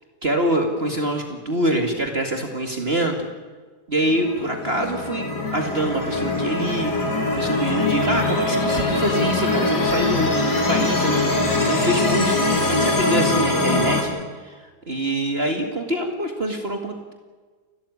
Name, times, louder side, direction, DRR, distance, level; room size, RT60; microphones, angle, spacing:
voice 1, 0.2-3.3 3.9-6.9 7.4-14.2 14.4-17.1, right 1 dB, 35° right, 4 dB, 2.3 m, -25 dB
sound 1, 4.0-14.0, left 2 dB, 85° left, 4.2 m, -22 dB
29.5 x 13.5 x 9.8 m, 1.4 s
omnidirectional pair, 1.7 m